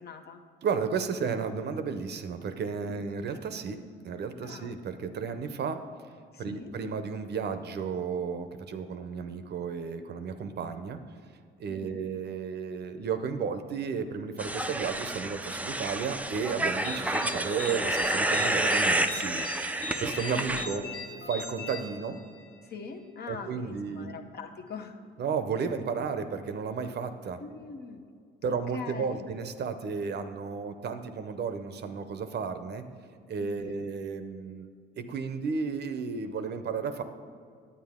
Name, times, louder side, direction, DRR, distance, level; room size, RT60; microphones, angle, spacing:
voice 1, 0.0-0.4 2.8-3.1 4.4-4.8 6.3-6.7 11.7-12.0 20.2-21.1 22.6-25.0 27.4-28.0 28.7-29.3 33.4-33.8, left 5 dB, 55° left, 5 dB, 0.9 m, -43 dB
voice 2, 0.6-5.8 6.4-11.0 11.6-20.8 21.3-22.2 23.3-24.1 25.2-27.4 28.4-32.8 33.3-34.7 35.0-37.0, right 5 dB, 55° right, 9 dB, 0.7 m, -33 dB
sound 1, 14.4-20.6, right 1 dB, 5° right, 0.4 m, -29 dB
sound 2, 16.8-22.6, left 3 dB, 90° left, 1.0 m, -41 dB
9.6 x 8.4 x 3.6 m, 2.2 s
cardioid pair, 90°, 20 cm